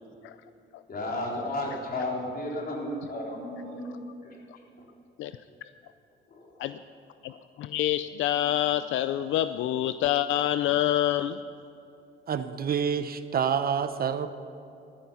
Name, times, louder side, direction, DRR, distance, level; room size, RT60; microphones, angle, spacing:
voice 1, 0.9-4.0 6.3-6.5, left 1 dB, 50° left, -2 dB, 4.0 m, -33 dB
voice 2, 7.2-11.4, left 12 dB, 80° left, 12 dB, 0.5 m, -27 dB
voice 3, 12.3-14.3, right 7 dB, 50° right, 11 dB, 0.8 m, -27 dB
14.0 x 13.5 x 5.7 m, 2.7 s
cardioid pair, 90°, 20 cm